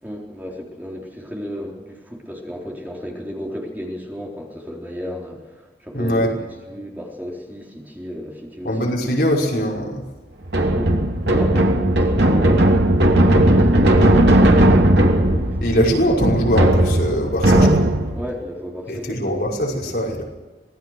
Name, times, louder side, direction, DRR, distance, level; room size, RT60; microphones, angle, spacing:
voice 1, 0.0-9.0 10.7-12.8 13.4-15.6 17.5-17.7 18.1-19.4, equal, 10° right, -1 dB, 3.9 m, -33 dB
voice 2, 5.9-6.3 8.6-10.0 15.6-17.7 18.9-20.2, equal, 55° left, -1 dB, 5.8 m, -21 dB
sound 1, 10.4-18.2, right 1 dB, 75° right, 2.8 m, -16 dB
26.0 x 20.0 x 6.5 m, 1.2 s
head